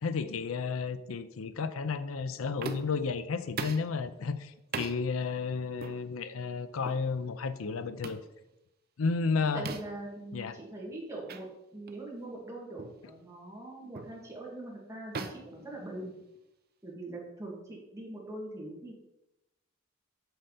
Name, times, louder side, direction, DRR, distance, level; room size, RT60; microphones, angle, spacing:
voice 1, 0.0-8.2 9.0-9.7 10.3-10.6, left 4 dB, 85° left, 13 dB, 0.5 m, -32 dB
sound 1, 2.6-3.0 3.6-3.9 4.7-5.0 5.8-6.0 6.8-7.0 8.0-8.3 9.7-10.0 11.3-11.4 11.9-12.0 12.8-13.0 13.9-14.2 15.1-16.4, right 4 dB, 50° right, 0.6 m, -40 dB
voice 2, 9.5-11.5 11.7-16.1 16.8-18.9, right 2 dB, 15° right, -3 dB, 2.3 m, -42 dB
7.8 x 6.6 x 4.1 m, 0.91 s
head